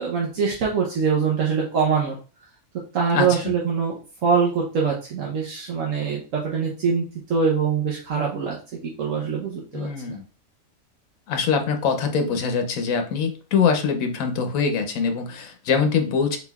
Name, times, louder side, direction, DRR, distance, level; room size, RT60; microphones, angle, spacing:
voice 1, 0.0-2.1 2.9-4.0 4.2-10.2, right 6 dB, 75° right, -2 dB, 1.2 m, -24 dB
voice 2, 3.1-3.5 9.7-10.2 11.3-16.4, left 6 dB, 90° left, 5 dB, 1.2 m, -23 dB
4.1 x 4.0 x 2.3 m, 0.35 s
omnidirectional pair, 1.4 m